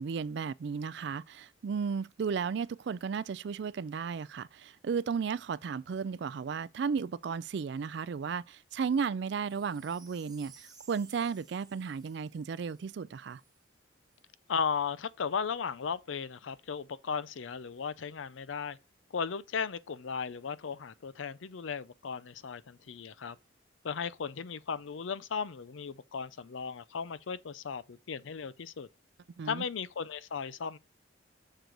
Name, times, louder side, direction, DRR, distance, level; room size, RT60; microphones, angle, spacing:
voice 1, 0.0-13.4 29.4-29.6, right 6 dB, 55° right, 0.3 m, -34 dB
Wind chime, 9.2-13.6 14.1-14.2, right 6 dB, 20° right, 1.0 m, -58 dB
voice 2, 14.5-18.8 19.1-23.4 23.8-28.9 29.4-30.8, left 6 dB, 75° left, 0.5 m, -36 dB
6.7 x 4.6 x 3.8 m
head